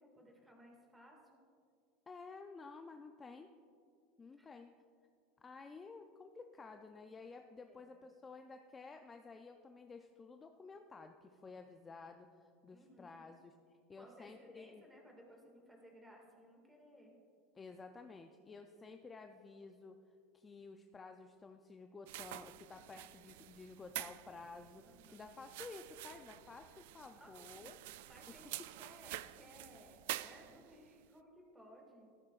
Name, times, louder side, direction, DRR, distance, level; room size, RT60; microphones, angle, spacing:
voice 1, 0.0-1.4 4.4-4.5 7.6-7.8 12.7-13.2 14.0-17.2 24.8-25.3 27.1-27.7 28.1-32.1, equal, 10° right, 0 dB, 2.0 m, -60 dB
voice 2, 2.1-3.5 4.2-4.7 5.4-14.8 17.5-20.0 20.3-24.9 25.1-27.8 28.3-28.4, left 4 dB, 15° left, 6 dB, 0.4 m, -53 dB
sound 1, 22.1-30.9, right 16 dB, 75° right, 0.3 m, -48 dB
13.5 x 12.5 x 2.4 m, 2.3 s
supercardioid pair, 145°, 0 cm